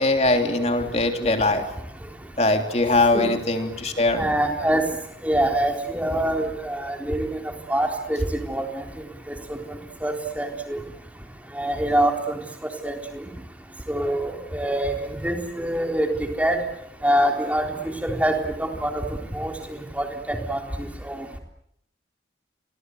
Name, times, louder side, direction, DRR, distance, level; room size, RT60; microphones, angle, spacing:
voice 1, 0.0-1.6 2.4-4.2, left 2 dB, 35° left, 5 dB, 3.4 m, -21 dB
voice 2, 4.2-4.8 5.2-7.3 7.7-8.2 8.5-8.7 9.5-9.6 10.0-10.8 11.6-12.4 12.8-12.9 13.9-16.6 17.0-17.7 18.0-19.0 19.3-19.5 20.0-20.6 21.0-21.2, right 1 dB, 10° right, 3 dB, 3.8 m, -24 dB
30.0 x 24.0 x 7.9 m, 0.77 s
head